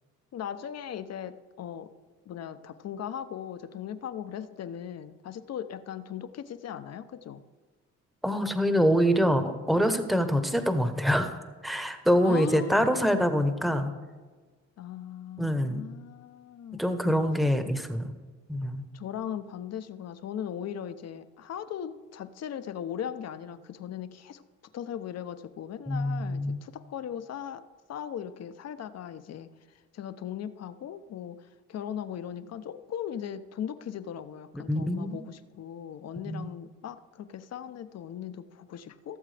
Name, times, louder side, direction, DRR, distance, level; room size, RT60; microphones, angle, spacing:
voice 1, 0.3-1.9 2.3-7.4 12.2-13.3 14.8-17.2 18.9-24.4 24.7-27.6 27.9-29.5 29.9-39.2, left 9 dB, 55° left, 11 dB, 0.7 m, -38 dB
voice 2, 8.2-11.4 11.6-13.9 15.4-15.8 16.8-18.1 18.5-18.8 25.9-26.6 34.5-35.2 36.3-36.5, equal, ahead, 8 dB, 0.9 m, -25 dB
16.5 x 7.3 x 3.4 m, 1.4 s
cardioid pair, 90°, 30 cm